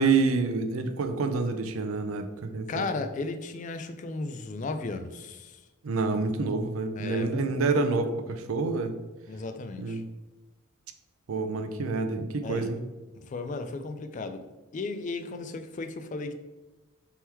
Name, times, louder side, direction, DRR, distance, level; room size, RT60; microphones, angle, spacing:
voice 1, 0.0-2.9 5.8-9.0 9.8-10.0 11.3-12.8, right 4 dB, 75° right, 8 dB, 0.4 m, -27 dB
voice 2, 2.7-5.6 7.0-7.5 9.3-10.0 12.4-12.7 13.2-14.4 14.7-16.3, left 3 dB, 35° left, 8 dB, 0.3 m, -35 dB
3.5 x 3.0 x 4.5 m, 1.2 s
head